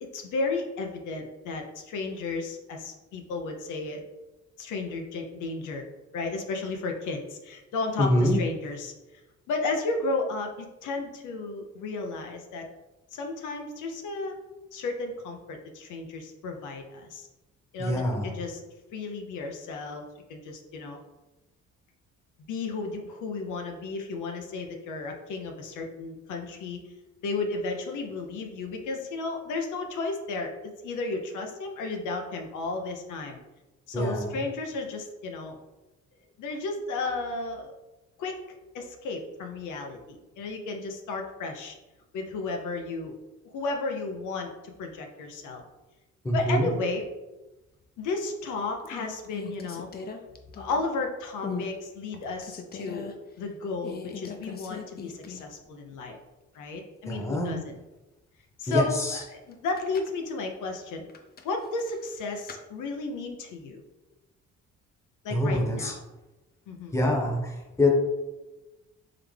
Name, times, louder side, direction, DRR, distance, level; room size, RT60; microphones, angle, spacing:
voice 1, 0.0-4.0 4.6-5.8 6.1-9.2 9.5-12.7 13.1-14.3 14.7-17.3 17.7-18.6 18.9-21.0 22.5-26.9 27.2-33.4 33.9-35.6 36.4-37.7 38.2-38.4 38.7-41.7 42.1-43.2 43.5-45.6 46.3-47.1 48.0-49.9 50.6-56.2 56.5-57.8 58.6-61.0 61.4-63.8 65.2-66.0 66.7-66.9, left 3 dB, 80° left, 3 dB, 0.7 m, -33 dB
voice 2, 8.0-8.4 17.8-18.3 33.9-34.3 46.2-46.7 57.1-57.6 58.7-59.2 65.3-65.9 66.9-67.9, left 1 dB, 10° left, -1 dB, 1.0 m, -25 dB
sound 1, 48.1-48.5 48.8-51.0 51.4-51.7 52.1-53.1 53.8-55.6 55.9-56.0 59.5-60.2 61.1-62.6, left 5 dB, 30° left, 0.6 m, -40 dB
3.8 x 3.4 x 3.3 m, 1.1 s
cardioid pair, 90°, 30 cm